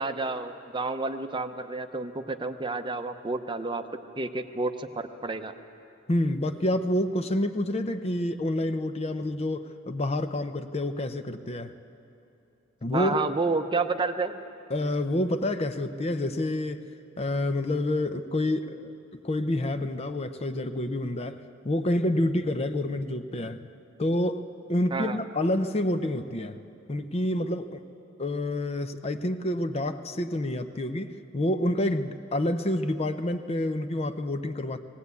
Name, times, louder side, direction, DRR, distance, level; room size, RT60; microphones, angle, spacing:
voice 1, 0.0-3.8 4.2-5.5 12.9-14.4 24.9-25.2, right 3 dB, 25° right, 8 dB, 0.7 m, -30 dB
voice 2, 6.1-11.7 12.8-13.3 14.7-16.8 17.2-21.4 21.6-23.7 24.0-24.4 24.7-26.6 26.9-27.8 28.2-34.8, left 1 dB, 30° left, 9 dB, 0.6 m, -28 dB
18.5 x 18.5 x 8.2 m, 2.7 s
head